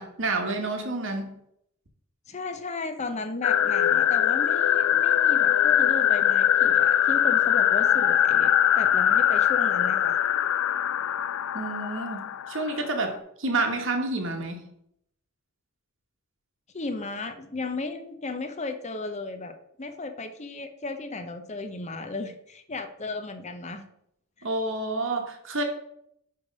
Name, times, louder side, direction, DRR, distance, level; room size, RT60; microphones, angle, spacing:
voice 1, 0.0-1.4 11.5-14.6 24.4-25.6, right 2 dB, 60° right, 4 dB, 1.3 m, -29 dB
voice 2, 2.3-10.2 16.7-23.9 24.4-24.5, left 3 dB, 30° left, 7 dB, 0.7 m, -35 dB
sound 1, 3.4-13.1, left 10 dB, 70° left, 0.3 m, -22 dB
10.0 x 3.4 x 5.2 m, 0.74 s
head